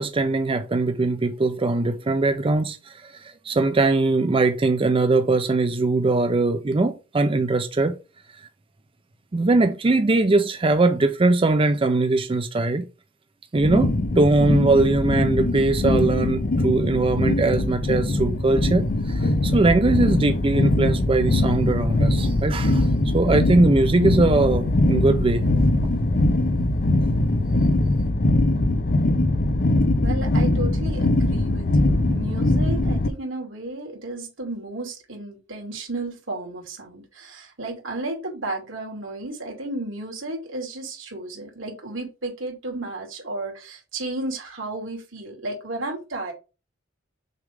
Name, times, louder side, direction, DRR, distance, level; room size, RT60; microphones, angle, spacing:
voice 1, 0.0-2.8 3.0-3.1 3.4-8.0 9.3-12.9 13.5-22.9 23.1-25.4, right 2 dB, 25° right, 0.4 m, -21 dB
sound 1, 13.6-33.1, left 2 dB, 50° left, 0.6 m, -21 dB
voice 2, 30.0-46.3, right 2 dB, 85° right, 2.5 m, -33 dB
6.5 x 3.5 x 4.8 m
head